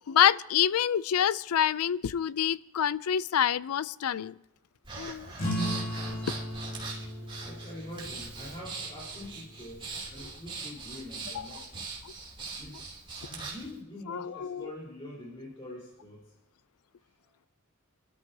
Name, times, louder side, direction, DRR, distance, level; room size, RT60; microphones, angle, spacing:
voice 1, 0.1-4.3 5.0-5.3 6.1-6.2 11.3-11.6 12.0-12.1 14.1-14.7, left 9 dB, 90° left, 18 dB, 0.4 m, -27 dB
Breathing, 4.8-13.7, right 4 dB, 25° right, 3.1 m, -41 dB
sound 1, 5.3-10.4, equal, 40° left, 5.5 m, -37 dB
voice 2, 7.4-11.9 12.6-12.8 13.3-16.2, left 1 dB, 25° left, -5 dB, 4.3 m, -44 dB
30.0 x 13.0 x 2.8 m, 0.90 s
head